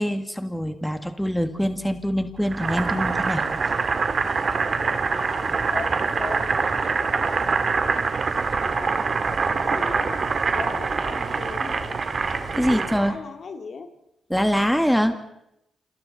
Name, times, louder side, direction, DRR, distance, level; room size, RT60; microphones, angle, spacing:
voice 1, 0.0-3.8 12.5-13.1 14.3-15.1, equal, ahead, 7 dB, 1.9 m, -24 dB
Boiling, 2.5-13.2, right 4 dB, 50° right, 2.1 m, -24 dB
voice 2, 4.6-5.4 5.7-8.0 8.6-9.0 9.6-10.2 10.5-12.1 12.6-13.9, left 5 dB, 60° left, 5 dB, 2.3 m, -38 dB
30.0 x 27.5 x 4.2 m, 0.83 s
cardioid pair, 75°, 0 cm